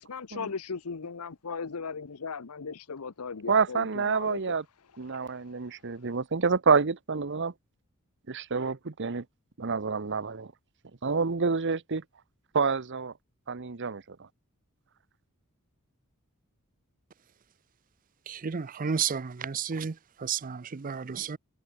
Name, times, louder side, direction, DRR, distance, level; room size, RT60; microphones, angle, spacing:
voice 1, 0.0-4.5 5.1-5.2, left 5 dB, 85° left, 0.8 m, -38 dB
voice 2, 3.5-4.6 5.0-7.5 8.3-9.2 9.6-10.5 11.0-12.0 12.5-13.1 13.5-14.2, right 5 dB, 55° right, 0.9 m, -28 dB
voice 3, 18.3-19.9 20.2-21.4, right 6 dB, 40° right, 0.5 m, -32 dB
head